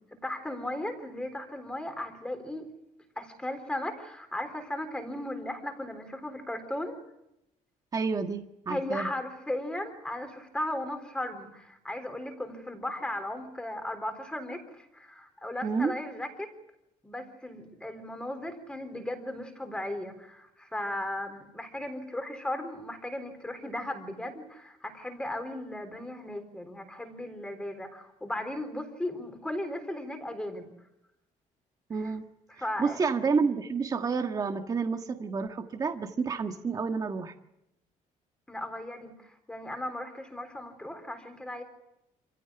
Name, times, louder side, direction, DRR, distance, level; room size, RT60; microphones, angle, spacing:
voice 1, 0.2-2.6 3.2-7.0 8.7-16.5 17.0-30.7 32.0-32.1 32.5-33.0 38.5-41.6, left 1 dB, 5° left, 7 dB, 3.9 m, -36 dB
voice 2, 7.9-9.1 15.6-15.9 31.9-32.2 32.8-37.3, right 5 dB, 25° right, 5 dB, 1.5 m, -29 dB
27.5 x 16.0 x 9.8 m, 0.87 s
cardioid pair, 160°, 14 cm